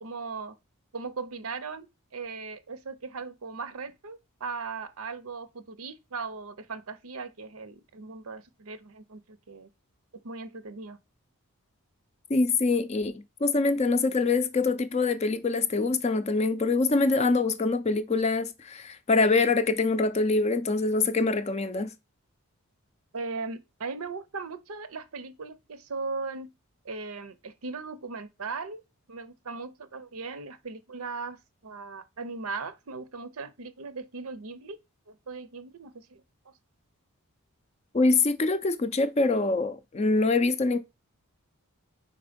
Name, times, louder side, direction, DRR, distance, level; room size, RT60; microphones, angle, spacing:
voice 1, 0.0-0.6 0.9-9.7 10.2-11.0 23.1-26.5 26.8-28.8 29.1-34.8 35.1-36.2, right 4 dB, 75° right, 0.7 m, -38 dB
voice 2, 12.3-13.1 13.4-21.9 37.9-40.8, left 3 dB, 30° left, 0.4 m, -24 dB
5.0 x 4.4 x 5.1 m
head